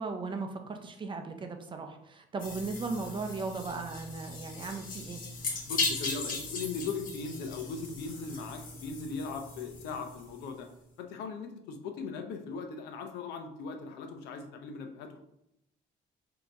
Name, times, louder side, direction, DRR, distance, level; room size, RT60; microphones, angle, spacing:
voice 1, 0.0-5.2, right 4 dB, 30° right, 5 dB, 0.6 m, -37 dB
sound 1, 2.4-10.5, left 3 dB, 55° left, 1.2 m, -38 dB
voice 2, 5.7-10.7 11.0-15.2, left 4 dB, 85° left, 5 dB, 0.7 m, -39 dB
3.9 x 2.9 x 4.6 m, 0.80 s
cardioid pair, 110°, 17 cm